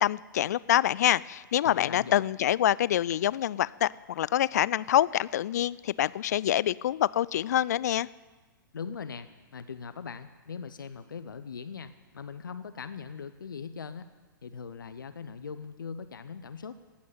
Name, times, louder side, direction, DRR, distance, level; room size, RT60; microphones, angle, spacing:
voice 1, 0.0-8.1, left 12 dB, 50° left, 21 dB, 0.4 m, -26 dB
voice 2, 1.6-2.2 8.7-14.1 14.4-16.8, left 6 dB, 65° left, 11 dB, 0.8 m, -40 dB
17.0 x 8.5 x 9.4 m, 1.3 s
figure-of-eight pair, 110°, 11 cm